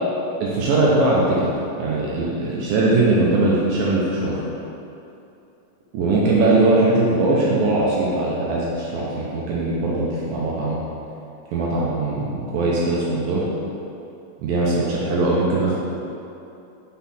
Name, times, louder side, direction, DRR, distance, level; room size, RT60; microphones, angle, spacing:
voice 1, 0.4-1.5 1.8-4.4 5.9-10.8 11.5-13.4 14.4-15.8, right 2 dB, 80° right, -5 dB, 2.2 m, -20 dB
6.0 x 3.7 x 4.2 m, 2.7 s
omnidirectional pair, 4.5 m